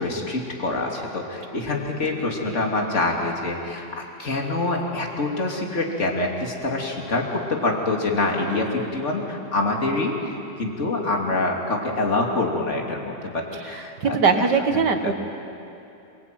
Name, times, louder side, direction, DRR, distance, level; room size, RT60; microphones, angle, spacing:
voice 1, 0.0-14.5 14.7-15.1, left 2 dB, 40° left, 0 dB, 3.3 m, -26 dB
voice 2, 14.0-15.1, right 5 dB, 70° right, 6 dB, 2.2 m, -20 dB
27.5 x 22.0 x 9.4 m, 2.7 s
omnidirectional pair, 1.9 m